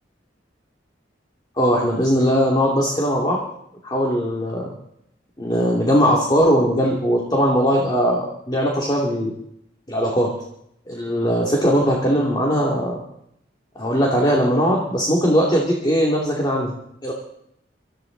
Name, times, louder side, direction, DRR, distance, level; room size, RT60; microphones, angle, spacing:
voice 1, 1.6-3.4 3.8-4.7 5.4-9.3 9.9-10.3 10.9-13.0 13.8-16.8 17.0-17.1, equal, 25° left, -2 dB, 2.7 m, -19 dB
25.0 x 14.5 x 4.0 m, 0.74 s
head